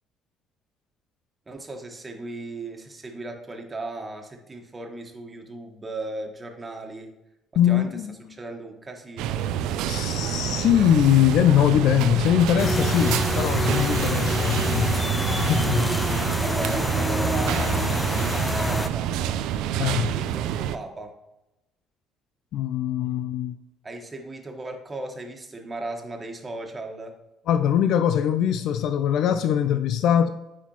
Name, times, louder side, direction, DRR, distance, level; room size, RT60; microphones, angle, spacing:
voice 1, 1.5-7.1 7.7-7.9 8.3-9.4 16.4-17.8 18.1-19.4 20.1-21.1 23.8-27.1, right 2 dB, 25° right, 1.4 m, -37 dB
voice 2, 7.6-8.2 9.9-15.0 15.3-15.9 19.8-20.2 22.5-23.6 27.5-30.3, left 10 dB, 65° left, 0.3 m, -22 dB
sound 1, 9.2-20.8, right 10 dB, 75° right, 0.4 m, -27 dB
sound 2, 12.6-18.9, left 1 dB, 15° left, 0.5 m, -26 dB
9.8 x 4.2 x 3.0 m
hypercardioid pair, 55°, 0 cm